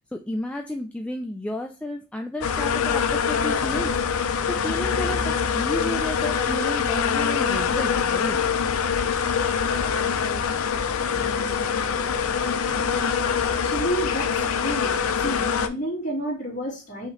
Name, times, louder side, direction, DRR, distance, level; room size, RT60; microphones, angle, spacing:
voice 1, 0.0-8.4, left 1 dB, 5° left, 3 dB, 0.3 m, -32 dB
sound 1, 2.4-15.7, left 6 dB, 85° left, 0.5 m, -24 dB
sound 2, 3.2-15.4, equal, 45° right, 1.6 m, -46 dB
voice 2, 13.1-14.9 15.2-17.1, right 1 dB, 40° left, -4 dB, 2.2 m, -31 dB
5.6 x 2.8 x 3.1 m, 0.31 s
head